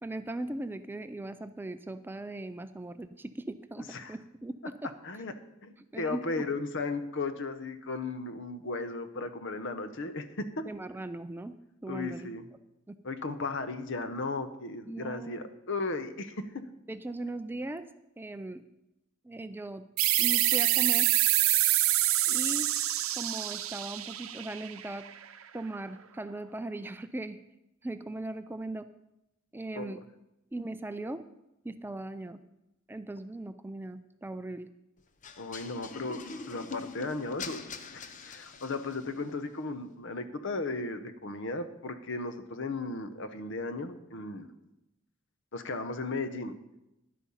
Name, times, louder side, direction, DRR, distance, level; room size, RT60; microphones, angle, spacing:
voice 1, 0.0-4.9 5.9-6.5 10.6-11.5 11.8-12.3 12.9-13.0 14.9-15.5 16.9-17.9 18.2-18.6 19.2-19.9 20.2-21.1 22.3-22.7 23.2-25.0 25.5-27.4 27.8-28.9 29.5-30.0 30.5-31.2 31.6-32.4 32.9-34.7, right 2 dB, 10° right, 11 dB, 0.4 m, -38 dB
voice 2, 5.6-10.6 11.9-12.5 13.0-16.6 29.7-29.9 35.4-37.6 37.9-44.5 45.5-46.5, left 3 dB, 65° left, 10 dB, 0.9 m, -36 dB
sound 1, 20.0-25.2, right 14 dB, 85° right, 0.7 m, -26 dB
sound 2, 35.2-39.2, left 4 dB, 40° left, 0.7 m, -43 dB
11.0 x 8.4 x 5.6 m, 0.90 s
head